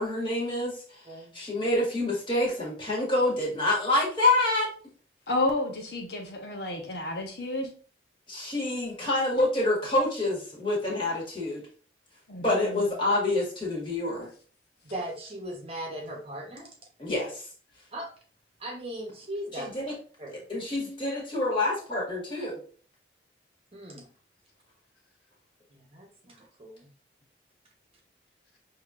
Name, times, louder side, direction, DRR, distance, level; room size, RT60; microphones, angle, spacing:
voice 1, 0.0-1.0 1.3-4.7 8.3-11.6 12.4-14.3 17.0-17.5 19.6-19.9 20.5-22.6, left 2 dB, 30° left, -4 dB, 1.7 m, -27 dB
voice 2, 1.0-1.4 14.8-16.7 17.9-18.1 18.6-19.7 20.2-20.4 23.7-24.0 25.7-26.9, right 1 dB, 30° right, 1 dB, 1.0 m, -38 dB
voice 3, 5.3-7.7 12.3-12.9, left 2 dB, 60° left, 1 dB, 0.9 m, -31 dB
6.4 x 2.9 x 2.4 m, 0.41 s
head